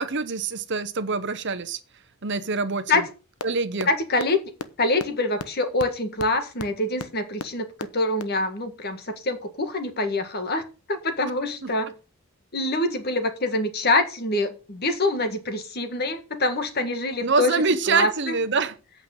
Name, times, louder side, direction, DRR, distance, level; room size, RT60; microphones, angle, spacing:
voice 1, 0.0-1.8 2.2-3.0 3.4-3.9 11.6-11.7 17.2-18.8, right 4 dB, 55° right, 0.9 m, -25 dB
sound 1, 3.4-3.5 3.8-3.9 4.2-4.3 4.6-4.7 5.0-5.1 5.4-5.5 5.8-5.9 6.2-6.3 6.6-6.7 7.0-7.1 7.4-7.5 7.8-7.9 8.2-8.3, left 4 dB, 85° left, 0.9 m, -31 dB
voice 2, 3.9-4.4 4.8-10.6 10.9-11.9 12.5-17.6 17.9-18.3, left 2 dB, 45° left, 1.7 m, -25 dB
8.4 x 5.7 x 7.5 m
head